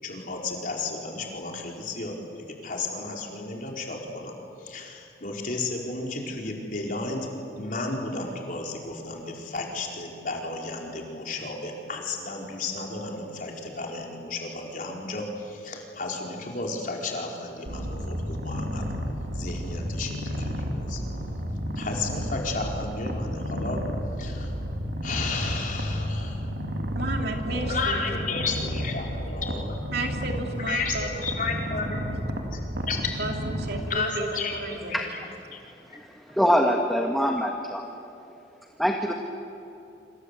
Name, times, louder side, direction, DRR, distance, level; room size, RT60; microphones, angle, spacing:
voice 1, 0.0-18.8 19.3-21.0 21.8-23.8 24.2-24.5 25.0-26.5 27.4-29.8 30.7-32.0 32.5-32.6 32.9-33.1 33.9-35.2 35.5-35.6 35.9-36.0, left 3 dB, 50° left, 0 dB, 4.5 m, -33 dB
Purr, 17.7-33.8, equal, 85° right, 3.0 m, -32 dB
voice 2, 26.9-28.0 29.9-31.1 33.2-35.0, right 2 dB, 65° right, 2 dB, 3.2 m, -32 dB
voice 3, 36.3-37.8 38.8-39.1, equal, ahead, 2 dB, 1.5 m, -23 dB
26.5 x 26.5 x 8.3 m, 2.8 s
head